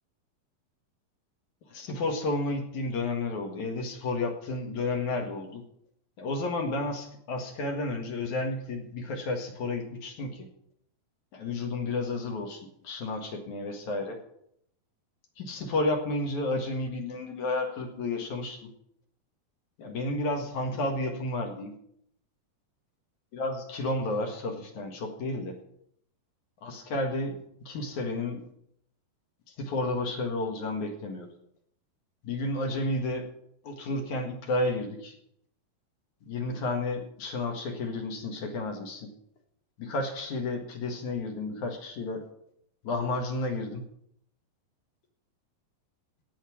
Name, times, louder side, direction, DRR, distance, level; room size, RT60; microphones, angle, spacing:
voice 1, 1.7-5.6 6.2-10.5 11.3-14.2 15.4-18.6 19.8-21.7 23.3-25.6 26.6-28.4 29.6-31.3 32.2-33.2 33.6-35.1 36.2-39.1 39.8-42.3 42.8-43.8, left 2 dB, 60° left, 3 dB, 2.9 m, -31 dB
16.5 x 5.8 x 8.4 m, 0.71 s
omnidirectional pair, 4.2 m